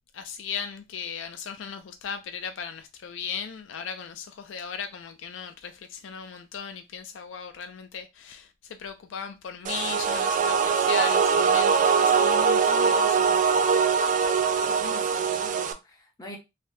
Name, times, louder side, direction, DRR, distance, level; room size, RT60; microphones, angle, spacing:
voice 1, 0.1-13.6, left 7 dB, 70° left, 0.4 m, -37 dB
sound 1, 9.6-15.7, right 6 dB, 40° right, 0.3 m, -22 dB
voice 2, 14.7-16.4, left 1 dB, 20° left, 0.8 m, -44 dB
3.3 x 2.1 x 2.7 m
head